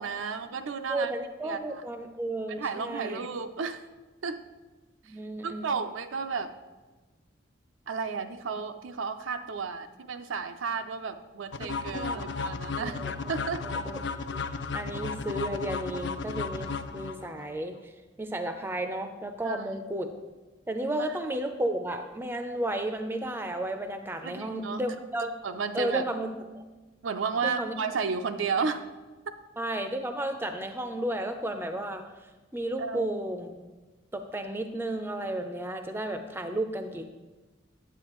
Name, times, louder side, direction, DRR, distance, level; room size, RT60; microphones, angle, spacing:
voice 1, 0.0-1.1 1.4-1.8 2.5-3.8 4.2-4.4 5.4-6.5 7.9-13.0 13.3-13.6 19.4-19.6 24.2-24.8 25.4-26.0 27.0-28.9 29.3-29.4 32.8-33.1, right 5 dB, 80° right, 8 dB, 0.5 m, -32 dB
voice 2, 0.9-3.2 5.0-5.7 11.6-12.3 12.7-13.4 13.6-14.4 14.7-17.9 18.2-20.1 20.7-25.4 25.7-26.3 26.5-26.6 27.4-27.7 29.6-32.0 32.5-33.7 34.1-37.2, right 1 dB, 10° right, 7 dB, 0.4 m, -33 dB
sound 1, 11.5-17.5, left 4 dB, 60° left, 0.4 m, -34 dB
9.0 x 8.1 x 3.0 m, 1.2 s
head